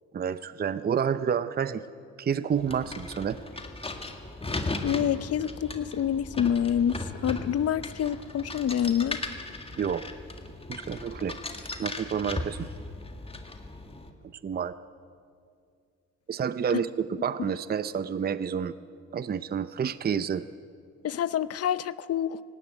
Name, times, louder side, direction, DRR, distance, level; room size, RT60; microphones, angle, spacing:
voice 1, 0.1-1.8 2.2-3.4 9.8-10.1 10.7-11.4 11.8-12.7 14.4-14.7 16.3-18.8 19.1-20.5, right 7 dB, 30° right, 14 dB, 0.6 m, -29 dB
sound 1, 2.5-14.1, left 2 dB, 20° left, 1.9 m, -37 dB
voice 2, 4.8-7.0 7.2-9.2 21.0-22.4, left 9 dB, 55° left, 17 dB, 0.7 m, -27 dB
18.0 x 17.0 x 9.0 m, 2.3 s
cardioid pair, 90°, 30 cm